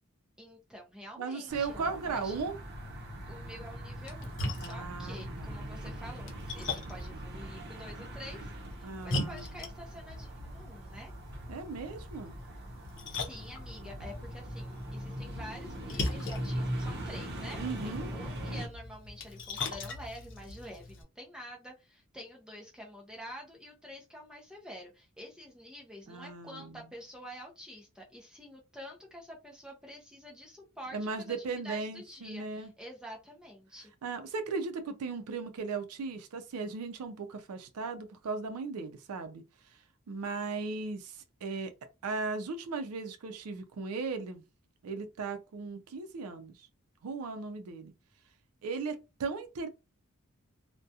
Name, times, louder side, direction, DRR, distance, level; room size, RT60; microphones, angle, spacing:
voice 1, 0.4-2.4 3.3-11.1 13.1-33.9, equal, 5° right, 0.5 m, -48 dB
voice 2, 1.2-2.6 4.6-5.7 8.8-9.7 11.5-12.3 17.6-18.1 26.1-26.8 30.9-32.7 34.0-39.4 40.1-41.7 42.0-44.4 44.8-46.7 47.0-47.9 48.6-49.7, right 4 dB, 80° right, 0.4 m, -37 dB
sound 1, 1.5-18.7, equal, 50° right, 0.7 m, -41 dB
Splash splatter, 3.9-21.0, left 2 dB, 55° left, 0.7 m, -41 dB
2.3 x 2.1 x 2.6 m
head